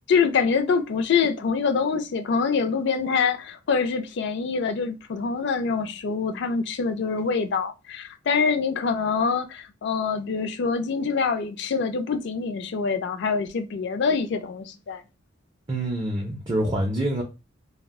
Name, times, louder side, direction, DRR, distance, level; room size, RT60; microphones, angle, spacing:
voice 1, 0.1-15.0, left 5 dB, 60° left, 0.3 m, -25 dB
voice 2, 15.7-17.2, right 1 dB, 25° right, 0.4 m, -26 dB
2.3 x 2.1 x 3.5 m
head